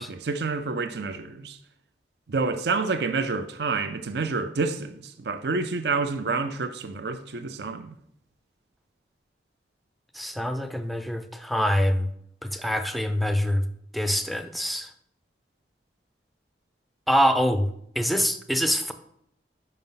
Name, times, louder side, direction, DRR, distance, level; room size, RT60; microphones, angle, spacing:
voice 1, 0.0-1.6 2.3-8.0, right 4 dB, 65° right, 0.5 m, -28 dB
voice 2, 10.1-12.1 12.4-13.7 13.9-14.9 17.1-17.7 18.0-18.9, equal, ahead, 0.4 m, -25 dB
5.4 x 5.3 x 5.6 m
head